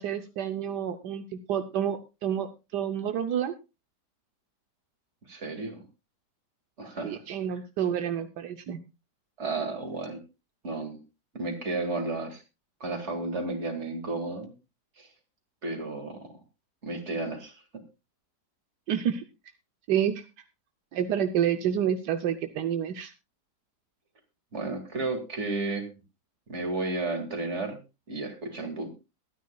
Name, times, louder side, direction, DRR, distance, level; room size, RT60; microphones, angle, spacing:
voice 1, 0.0-3.5 7.0-8.8 18.9-19.2 19.9-20.2 20.9-23.1, right 9 dB, 80° right, 8 dB, 1.4 m, -29 dB
voice 2, 5.3-5.8 6.8-7.2 9.4-10.2 10.6-11.0 11.3-12.4 12.8-14.5 15.0-15.1 15.6-16.3 16.8-17.8 24.5-25.9 26.5-27.8 28.1-28.9, right 3 dB, 45° right, 6 dB, 2.4 m, -33 dB
22.5 x 9.4 x 2.3 m, 0.27 s
omnidirectional pair, 1.8 m